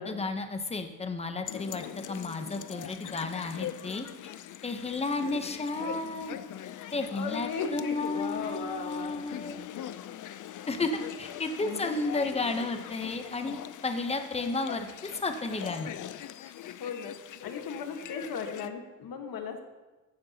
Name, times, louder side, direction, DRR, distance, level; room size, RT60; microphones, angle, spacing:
voice 1, 0.0-4.1 4.6-6.4 6.9-9.7 10.7-10.9 11.2-15.9, left 3 dB, 20° left, 7 dB, 0.7 m, -33 dB
sound 1, 1.5-18.7, left 11 dB, 60° left, 0.5 m, -42 dB
voice 2, 7.1-9.3 11.6-11.9 16.8-17.1 17.4-19.6, left 6 dB, 85° left, 5 dB, 1.3 m, -36 dB
14.5 x 9.5 x 2.8 m, 1.2 s
wide cardioid pair, 170°, 34 cm